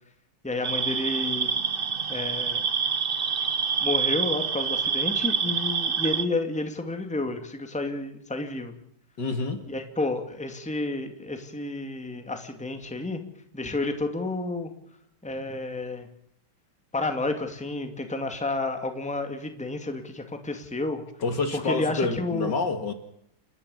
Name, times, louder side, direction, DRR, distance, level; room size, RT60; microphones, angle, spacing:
voice 1, 0.4-1.6 2.1-2.6 3.8-8.7 9.7-13.2 13.5-14.7 15.2-16.1 16.9-21.0 21.5-22.5, left 2 dB, 5° left, 2.1 m, -30 dB
sound 1, 0.6-6.3, right 6 dB, 45° right, 0.7 m, -27 dB
voice 2, 9.2-9.6 21.2-22.9, left 3 dB, 55° left, 2.6 m, -27 dB
29.5 x 12.0 x 8.4 m
omnidirectional pair, 2.3 m